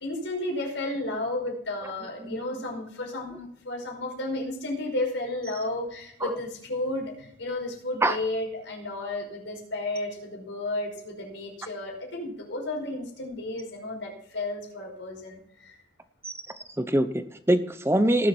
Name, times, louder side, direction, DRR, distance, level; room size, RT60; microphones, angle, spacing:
voice 1, 0.0-15.8, left 2 dB, 75° left, 0 dB, 5.3 m, -33 dB
voice 2, 16.8-18.3, right 1 dB, 15° right, 10 dB, 0.8 m, -24 dB
18.5 x 7.4 x 4.5 m, 0.72 s
head